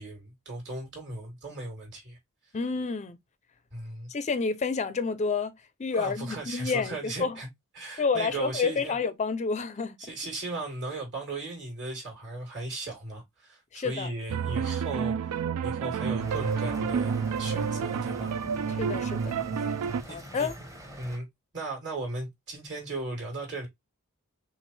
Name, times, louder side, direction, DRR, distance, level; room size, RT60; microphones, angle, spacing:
voice 1, 0.0-2.2 3.7-4.1 5.9-7.5 7.7-9.0 10.0-18.4 19.1-19.8 20.1-20.5 21.0-21.3 21.5-23.7, right 2 dB, 55° right, 3.0 m, -37 dB
voice 2, 2.5-3.2 4.1-5.5 5.8-7.4 8.0-10.0 13.7-14.1 18.8-19.3 20.1-20.5, left 4 dB, 30° left, 0.4 m, -29 dB
sound 1, 14.3-20.0, right 6 dB, 80° right, 0.4 m, -29 dB
sound 2, 16.2-21.2, equal, 15° right, 0.9 m, -44 dB
6.0 x 2.4 x 3.2 m
head